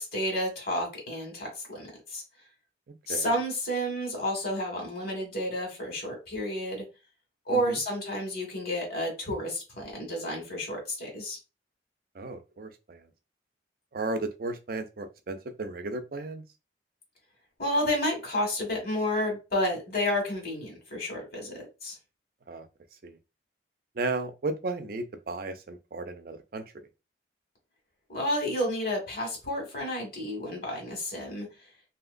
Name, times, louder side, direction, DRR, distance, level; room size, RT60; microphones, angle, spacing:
voice 1, 0.0-2.2 3.1-6.8 7.5-11.4 17.6-21.9 28.1-31.5, equal, 55° left, 1.7 m, -31 dB
voice 2, 12.1-13.0 13.9-16.4 22.5-22.7 23.0-23.2 24.0-26.6, right 3 dB, 55° right, 0.5 m, -34 dB
2.8 x 2.8 x 2.5 m
head